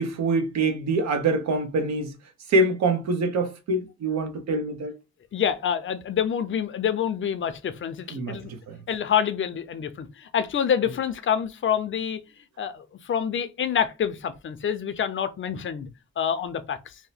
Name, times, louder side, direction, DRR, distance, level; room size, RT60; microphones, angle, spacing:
voice 1, 0.0-2.1 2.5-4.9 8.1-8.8, right 2 dB, 60° right, 1.0 m, -25 dB
voice 2, 5.3-8.5 8.9-12.2 12.6-15.9 16.2-16.9, left 8 dB, 40° left, 0.6 m, -27 dB
2.8 x 2.1 x 4.1 m
cardioid pair, 90°, 30 cm